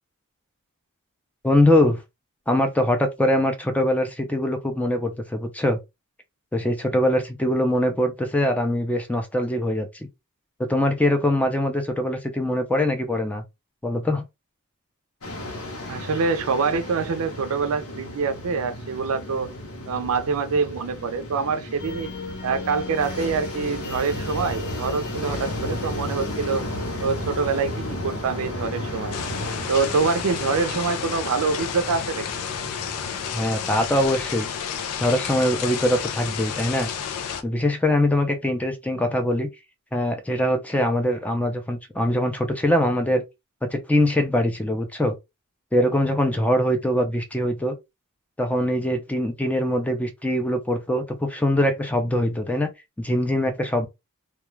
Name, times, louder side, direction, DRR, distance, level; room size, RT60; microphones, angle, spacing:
voice 1, 1.4-2.0 2.5-5.8 6.5-9.9 10.6-13.4 13.8-14.3 33.3-34.5 35.0-36.9 37.4-39.5 39.9-43.2 43.6-45.1 45.7-47.8 48.4-52.7 53.0-53.9, left 1 dB, 5° left, 0.4 m, -22 dB
sound 1, 15.2-33.3, left 1 dB, 65° left, 0.9 m, -34 dB
voice 2, 15.9-19.5 19.9-22.1 22.4-26.6 27.0-29.2 29.7-32.3, right 4 dB, 70° right, 0.4 m, -25 dB
sound 2, 21.8-27.1, left 3 dB, 40° left, 0.7 m, -36 dB
sound 3, 29.1-37.4, left 7 dB, 85° left, 0.4 m, -31 dB
2.3 x 2.2 x 3.0 m
head